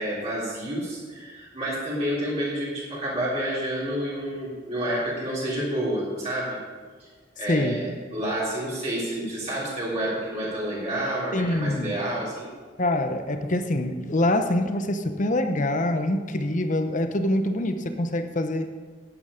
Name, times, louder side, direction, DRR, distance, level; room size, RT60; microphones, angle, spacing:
voice 1, 0.0-6.6 7.0-7.1 7.4-12.5, right 1 dB, 35° right, -8 dB, 3.4 m, -29 dB
voice 2, 7.5-7.8 11.3-11.9 12.8-18.7, left 1 dB, 40° left, 8 dB, 0.8 m, -25 dB
11.0 x 10.0 x 5.1 m, 1.5 s
head